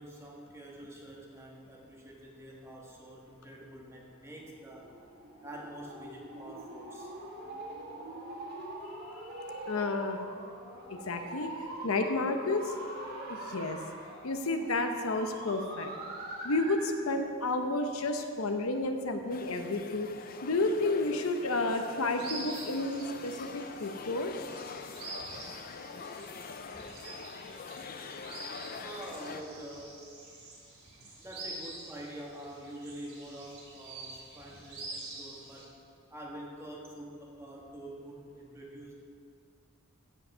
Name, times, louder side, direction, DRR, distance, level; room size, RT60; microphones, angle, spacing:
voice 1, 0.0-4.9 5.4-7.1 25.2-25.4 26.7-26.9 28.8-30.0 31.2-35.8 36.1-38.9, right 1 dB, 15° right, -3 dB, 1.5 m, -46 dB
sound 1, 4.3-17.0, right 1 dB, 50° right, 2.4 m, -43 dB
voice 2, 9.5-10.2 10.9-11.5 11.8-12.7 13.3-13.8 14.2-15.9 16.4-20.1 20.4-24.3, left 2 dB, 80° left, 6 dB, 0.8 m, -31 dB
sound 2, 19.3-29.4, left 5 dB, 45° left, 0.5 m, -44 dB
sound 3, 22.1-35.6, right 2 dB, 75° right, 2.8 m, -47 dB
15.5 x 5.3 x 5.5 m, 2.3 s
head